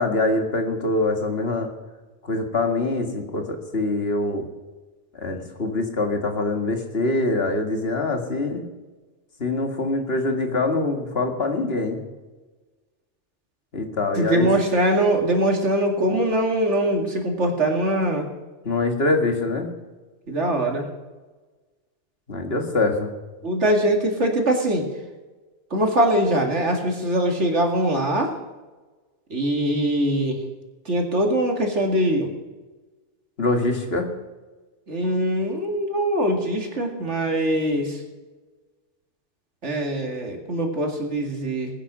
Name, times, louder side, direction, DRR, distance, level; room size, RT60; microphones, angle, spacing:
voice 1, 0.0-1.7 2.2-4.5 5.1-8.6 9.4-12.0 13.7-14.5 18.7-19.7 22.3-23.1 33.4-34.1, left 2 dB, 60° left, 4 dB, 2.1 m, -24 dB
voice 2, 14.1-18.2 20.3-20.9 23.4-24.9 25.7-28.4 29.3-30.4 30.9-32.3 34.9-38.0 39.6-41.7, right 1 dB, 85° right, 2 dB, 2.7 m, -22 dB
19.5 x 10.0 x 6.2 m, 1.2 s
omnidirectional pair, 1.2 m